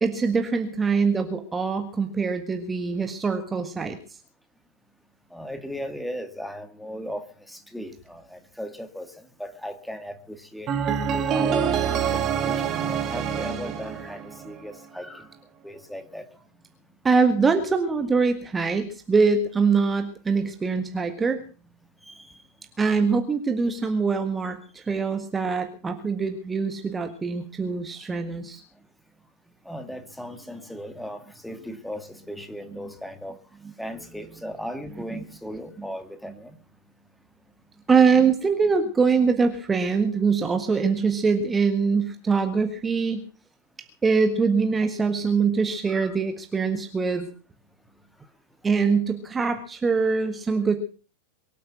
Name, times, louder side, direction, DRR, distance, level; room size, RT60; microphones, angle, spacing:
voice 1, 0.0-4.0 17.0-21.4 22.8-28.6 35.1-35.2 37.9-43.2 44.0-47.3 48.6-50.7, right 5 dB, 15° right, 7 dB, 1.6 m, -23 dB
voice 2, 5.3-10.7 11.1-15.3 15.6-16.3 22.0-22.4 29.7-33.4 33.8-36.6 45.9-46.2 48.7-48.9, equal, ahead, 8 dB, 2.0 m, -37 dB
sound 1, 10.7-14.7, right 7 dB, 30° right, 2.1 m, -26 dB
23.5 x 8.6 x 6.0 m, 0.38 s
figure-of-eight pair, 90°, 0 cm